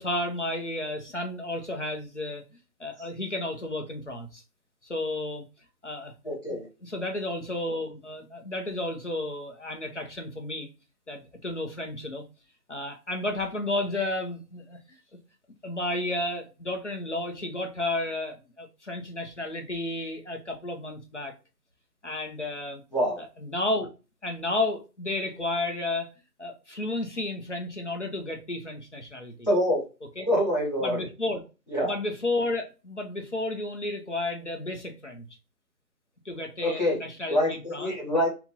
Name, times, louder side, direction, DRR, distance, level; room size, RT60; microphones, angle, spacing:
voice 1, 0.0-2.4 2.8-4.4 4.8-5.4 5.8-6.1 6.5-10.7 11.1-12.2 12.7-14.8 15.6-21.3 22.0-22.8 23.2-23.9 24.2-26.1 26.4-29.5 30.2-30.3 30.8-31.4 31.8-35.3 36.2-37.9, left 2 dB, 45° left, 0.6 m, -32 dB
voice 2, 6.2-6.7 22.9-23.2 29.5-29.8 30.3-31.0 31.7-31.9 36.6-37.0 37.3-38.3, equal, 25° left, 1.0 m, -25 dB
2.9 x 2.5 x 3.6 m
hypercardioid pair, 180°, 49 cm